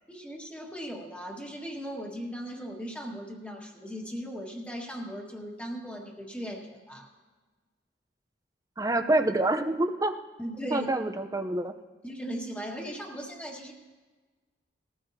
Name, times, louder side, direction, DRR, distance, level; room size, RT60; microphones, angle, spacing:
voice 1, 0.1-7.1 10.4-10.9 12.0-13.7, equal, 5° left, -1 dB, 1.7 m, -38 dB
voice 2, 8.8-10.2 10.7-11.7, right 2 dB, 20° right, 8 dB, 0.7 m, -26 dB
20.5 x 14.5 x 2.8 m, 1.4 s
head